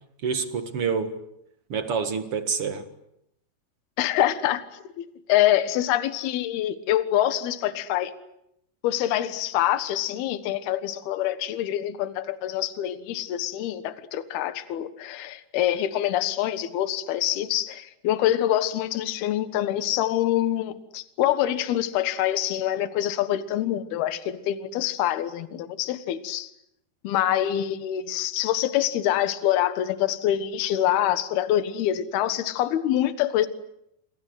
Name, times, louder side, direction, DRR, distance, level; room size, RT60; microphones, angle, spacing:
voice 1, 0.2-1.2 1.7-2.8, right 5 dB, 55° right, 1.7 m, -27 dB
voice 2, 4.0-4.6 5.0-8.1 8.8-26.5 27.0-33.5, left 12 dB, 70° left, 3.2 m, -25 dB
28.0 x 26.0 x 8.1 m
omnidirectional pair, 4.9 m